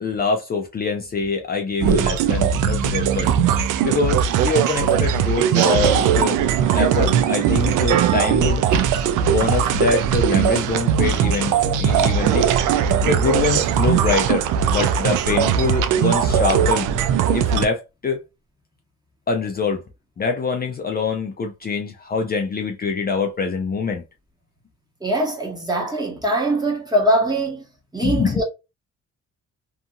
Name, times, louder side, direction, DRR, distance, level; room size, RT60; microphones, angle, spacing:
voice 1, 0.0-3.3 3.8-6.4 6.7-8.6 9.3-12.4 13.0-16.9 17.3-18.2 19.3-19.8 20.2-24.0 28.0-28.3, left 4 dB, 30° left, 0.5 m, -24 dB
sound 1, 1.8-17.7, right 8 dB, 85° right, 0.5 m, -19 dB
voice 2, 25.0-27.6 27.9-28.4, right 1 dB, 15° right, 1.1 m, -22 dB
2.8 x 2.5 x 2.4 m
cardioid pair, 90°, 30 cm